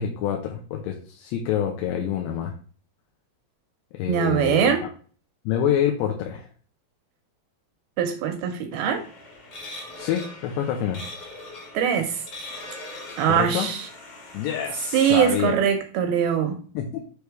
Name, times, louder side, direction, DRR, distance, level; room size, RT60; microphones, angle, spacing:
voice 1, 0.0-2.5 3.9-4.7 5.5-6.5 10.0-11.0 13.3-13.7 14.3-15.5 16.7-17.0, left 9 dB, 80° left, 2.7 m, -26 dB
voice 2, 4.1-4.8 8.0-9.0 11.7-12.2 13.2-13.9 14.9-16.6, right 8 dB, 80° right, 2.2 m, -22 dB
sound 1, 8.7-15.4, left 2 dB, 45° left, 2.1 m, -41 dB
6.9 x 3.3 x 4.6 m
omnidirectional pair, 4.9 m